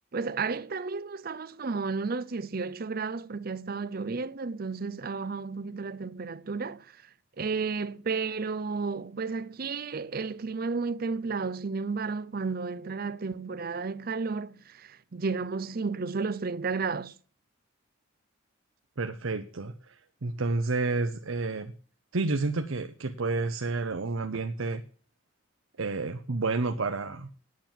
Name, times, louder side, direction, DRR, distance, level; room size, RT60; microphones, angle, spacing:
voice 1, 0.1-6.9 7.4-17.1, right 4 dB, 45° right, 0.5 m, -32 dB
voice 2, 19.0-21.7 22.1-24.8 25.8-27.3, right 3 dB, 80° right, 0.8 m, -30 dB
9.5 x 7.5 x 8.9 m
head